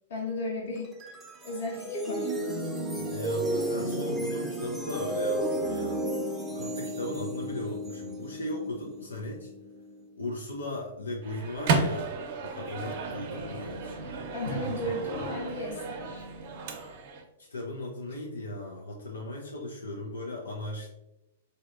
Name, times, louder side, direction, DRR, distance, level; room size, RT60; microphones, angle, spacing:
voice 1, 0.1-0.9 1.4-2.3 14.3-16.2, left 1 dB, 65° left, -2 dB, 1.1 m, -34 dB
sound 1, 0.8-10.0, right 1 dB, 10° right, 0.6 m, -33 dB
voice 2, 2.9-6.1 6.5-9.5 10.2-14.0 17.4-20.9, left 1 dB, 90° left, -1 dB, 0.5 m, -37 dB
Microwave oven, 11.2-17.2, right 4 dB, 50° right, 0.5 m, -33 dB
3.3 x 2.7 x 2.4 m, 0.91 s
hypercardioid pair, 115°, 0 cm